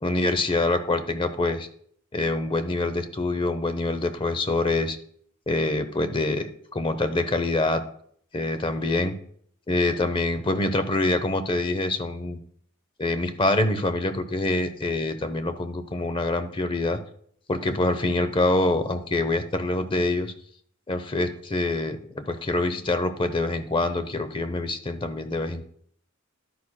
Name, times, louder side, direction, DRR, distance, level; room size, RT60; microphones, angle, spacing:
voice 1, 0.0-1.7 2.1-5.0 5.5-7.8 8.3-9.2 9.7-12.4 13.0-17.0 17.5-20.3 20.9-25.6, left 2 dB, 25° left, 10 dB, 0.7 m, -25 dB
11.5 x 9.7 x 2.2 m, 0.63 s
head